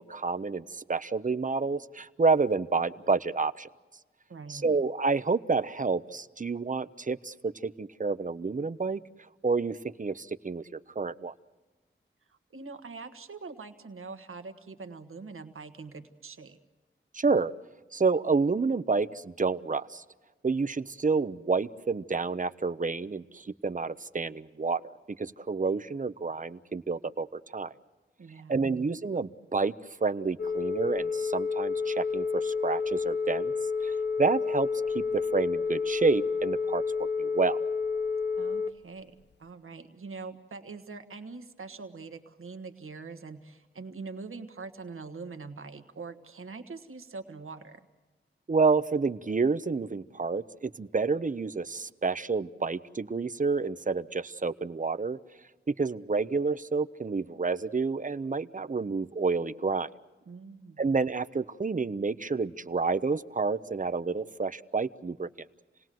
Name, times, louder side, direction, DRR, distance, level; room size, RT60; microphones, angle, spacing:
voice 1, 0.0-3.7 4.5-9.0 9.4-11.3 17.1-17.5 17.9-20.0 20.4-24.8 25.1-27.7 28.5-29.7 30.0-33.5 33.8-34.7 34.9-37.6 48.5-55.2 55.7-59.9 60.8-65.3, right 4 dB, 40° right, 13 dB, 0.7 m, -29 dB
voice 2, 4.3-4.6 12.3-16.6 28.2-28.6 38.4-39.1 39.4-47.8 60.3-60.8, right 4 dB, 85° right, 8 dB, 1.5 m, -43 dB
Telephone, 30.4-38.7, left 5 dB, 55° left, 0.8 m, -30 dB
28.5 x 19.0 x 7.7 m, 1.2 s
wide cardioid pair, 105°, 21 cm